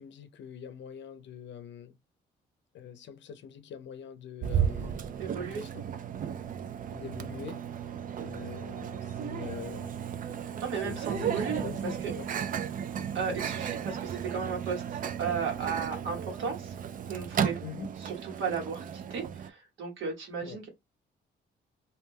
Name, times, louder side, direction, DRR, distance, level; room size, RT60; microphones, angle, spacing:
voice 1, 0.0-1.9 2.7-5.1 5.4-5.8 6.9-7.6 8.2-10.0 10.8-12.3 17.6-17.9 20.4-20.6, left 9 dB, 65° left, 0.6 m, -44 dB
Microwave oven, 4.4-19.5, right 8 dB, 45° right, 0.4 m, -34 dB
voice 2, 5.2-5.6 10.6-11.6 12.0-12.1 13.1-16.8 17.1-17.6 18.0-20.7, right 6 dB, 75° right, 1.5 m, -35 dB
2.8 x 2.1 x 3.3 m
cardioid pair, 90°, 20 cm